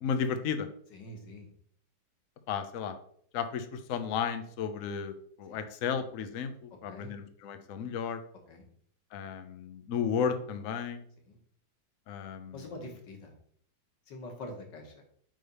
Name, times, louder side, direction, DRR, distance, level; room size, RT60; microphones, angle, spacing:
voice 1, 0.0-0.7 2.5-2.9 3.3-5.1 5.4-8.2 9.1-11.0 12.1-12.5, left 7 dB, 75° left, 8 dB, 0.7 m, -33 dB
voice 2, 0.9-1.5 5.5-5.6 6.9-7.1 8.5-8.6 11.2-11.4 12.5-13.3 14.1-15.0, left 1 dB, 60° left, 3 dB, 2.0 m, -45 dB
9.0 x 3.4 x 5.4 m, 0.64 s
omnidirectional pair, 2.3 m